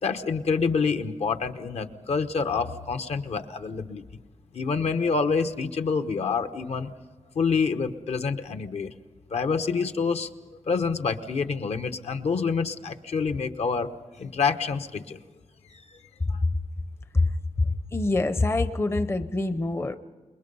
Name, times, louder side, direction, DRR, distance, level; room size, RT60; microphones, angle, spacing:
voice 1, 0.0-4.0 4.5-6.9 7.3-8.9 9.3-10.3 10.7-13.9 14.2-15.2 15.7-16.0 16.3-16.4, left 5 dB, 65° left, 8 dB, 1.0 m, -27 dB
voice 2, 17.9-20.0, left 2 dB, 20° left, 10 dB, 0.6 m, -24 dB
27.5 x 21.5 x 5.4 m, 1.4 s
wide cardioid pair, 155°, 12 cm